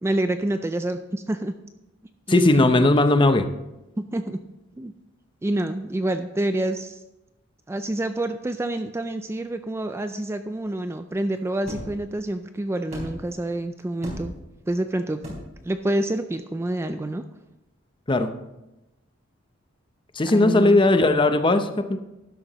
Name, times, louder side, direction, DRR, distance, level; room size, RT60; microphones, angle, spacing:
voice 1, 0.0-1.5 2.3-2.9 4.1-4.4 4.8-4.9 5.4-7.0 7.7-14.3 14.7-15.2 15.6-17.2 20.3-20.8, right 1 dB, 15° right, 9 dB, 0.3 m, -27 dB
voice 2, 2.3-3.5 18.1-18.3 20.2-22.0, left 2 dB, 25° left, 9 dB, 0.6 m, -18 dB
sound 1, 11.7-12.0 12.9-13.4 14.0-14.5 15.2-15.6, equal, 35° right, 4.2 m, -36 dB
13.0 x 10.5 x 3.0 m, 0.97 s
head